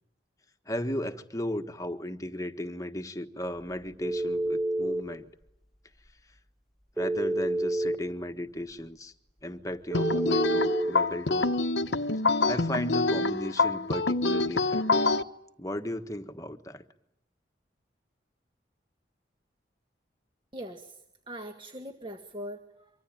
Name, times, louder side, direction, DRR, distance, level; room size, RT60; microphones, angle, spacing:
voice 1, 0.7-5.3 7.0-9.1 9.4-11.5 12.4-15.1 15.6-16.8, left 1 dB, 20° left, 7 dB, 1.5 m, -35 dB
Telephone, 4.0-5.0 7.0-8.0 9.9-10.9, right 1 dB, ahead, 1.6 m, -28 dB
sound 1, 9.9-15.2, left 3 dB, 80° left, 1.1 m, -26 dB
voice 2, 20.5-21.0 21.3-22.9, equal, 25° right, 5 dB, 1.7 m, -41 dB
25.0 x 25.0 x 9.1 m, 0.81 s
head